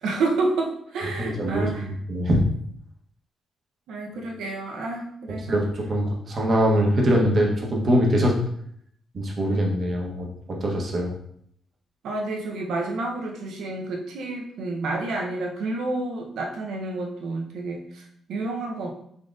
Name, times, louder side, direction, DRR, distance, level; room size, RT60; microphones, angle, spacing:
voice 1, 0.0-1.9 3.9-5.6 12.0-18.9, right 2 dB, 80° right, 0 dB, 0.7 m, -29 dB
voice 2, 1.2-2.4 5.5-8.4 9.1-11.1, equal, 40° right, -1 dB, 0.9 m, -23 dB
3.8 x 3.7 x 2.4 m, 0.69 s
cardioid pair, 110°, 0 cm